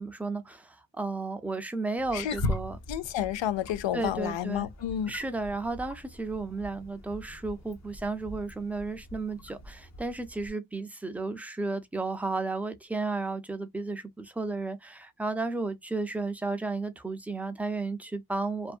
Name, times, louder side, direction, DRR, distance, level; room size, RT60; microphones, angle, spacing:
voice 1, 0.0-2.8 3.9-4.7 5.1-18.8, right 3 dB, 5° right, 0.3 m, -33 dB
Wild animals, 2.0-10.5, left 2 dB, 40° left, 0.7 m, -40 dB
voice 2, 2.9-5.1, left 11 dB, 85° left, 0.6 m, -30 dB
2.6 x 2.5 x 2.3 m
wide cardioid pair, 175°, 44 cm